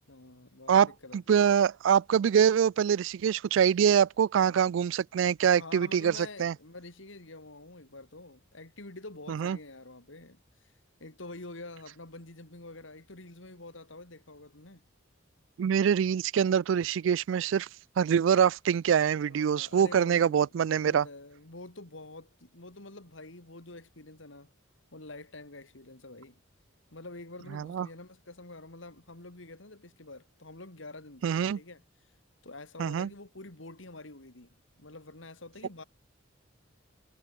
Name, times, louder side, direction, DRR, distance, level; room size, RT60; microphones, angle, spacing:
voice 1, 0.1-1.3 4.3-4.8 5.6-10.7 11.0-14.8 19.2-24.5 24.9-26.4 26.9-31.8 32.4-35.8, left 2 dB, 75° left, 3.1 m, -47 dB
voice 2, 1.1-6.5 9.3-9.6 15.6-17.7 18.0-21.1 27.5-27.9 31.2-31.6 32.8-33.1, right 8 dB, 70° right, 0.3 m, -24 dB
head